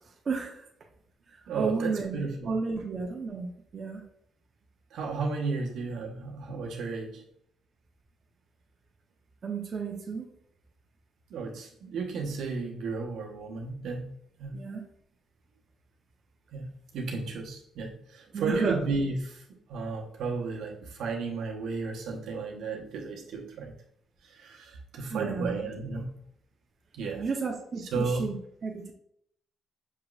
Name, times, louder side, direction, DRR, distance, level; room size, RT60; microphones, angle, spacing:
voice 1, 0.3-0.7 1.5-2.2 2.5-4.0 9.4-10.3 14.5-14.8 18.3-18.8 25.1-25.5 27.2-28.9, right 4 dB, 45° right, 1 dB, 0.7 m, -32 dB
voice 2, 1.5-2.5 4.9-7.2 11.3-14.1 14.4-14.6 16.5-23.7 24.2-26.1 26.9-27.2 27.9-28.3, right 4 dB, 80° right, 0 dB, 0.9 m, -33 dB
6.6 x 3.0 x 2.4 m, 0.70 s
cardioid pair, 90°, 0 cm